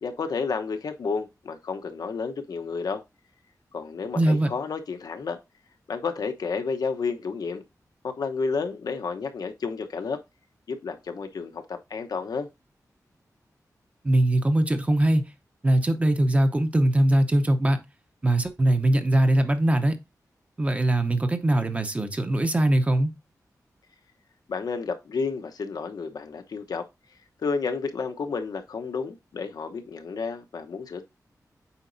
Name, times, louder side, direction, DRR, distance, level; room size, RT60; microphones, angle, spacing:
voice 1, 0.0-3.0 3.7-5.4 5.9-7.6 8.0-10.2 10.7-12.5 24.5-26.8 27.4-31.0, left 5 dB, 80° left, 1.0 m, -31 dB
voice 2, 4.2-4.5 14.0-15.3 15.6-17.8 18.2-20.0 20.6-23.1, right 1 dB, 20° right, 0.8 m, -21 dB
8.1 x 5.1 x 2.6 m
wide cardioid pair, 170°, 7 cm